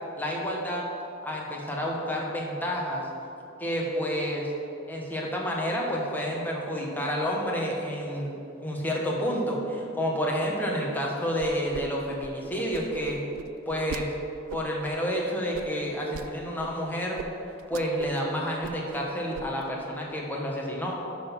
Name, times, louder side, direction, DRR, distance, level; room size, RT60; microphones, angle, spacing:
voice 1, 0.2-0.8 1.2-3.0 3.6-4.5 4.9-13.2 13.7-14.1 14.5-17.2 17.7-20.9, equal, 10° left, -2 dB, 1.3 m, -29 dB
sound 1, 11.4-11.8 12.1-14.0 14.5-14.9 15.5-16.3 16.6-16.7 17.2-17.3 17.6-18.2 18.5-19.0 19.3-19.7, right 6 dB, 80° right, 0.4 m, -39 dB
11.0 x 4.1 x 5.9 m, 2.7 s
head